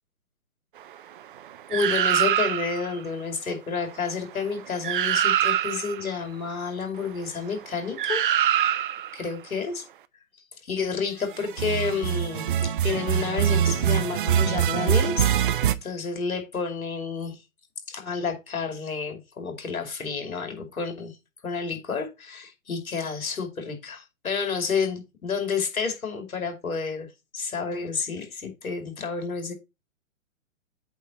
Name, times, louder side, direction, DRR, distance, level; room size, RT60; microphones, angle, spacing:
voice 1, 1.7-8.3 9.1-9.8 10.6-17.4 17.9-21.2 21.4-27.1 27.3-29.5, left 5 dB, 85° left, 2.7 m, -30 dB
sound 1, 1.7-2.9 4.5-4.6 4.8-6.0 8.0-9.1 11.5-15.7, right 10 dB, 40° right, 0.5 m, -24 dB
8.6 x 3.8 x 4.1 m
hypercardioid pair, 140°, 41 cm